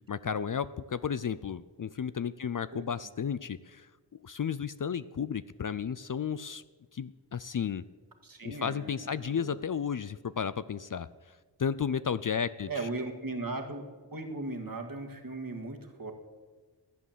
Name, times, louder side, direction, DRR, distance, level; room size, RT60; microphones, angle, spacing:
voice 1, 0.1-6.6 6.9-7.8 8.4-11.1 11.6-12.9, left 7 dB, 45° left, 15 dB, 0.5 m, -33 dB
voice 2, 8.2-9.6 12.7-13.8 14.1-16.1, right 2 dB, 50° right, 3 dB, 1.9 m, -38 dB
14.5 x 8.5 x 7.4 m, 1.4 s
wide cardioid pair, 50°, 45 cm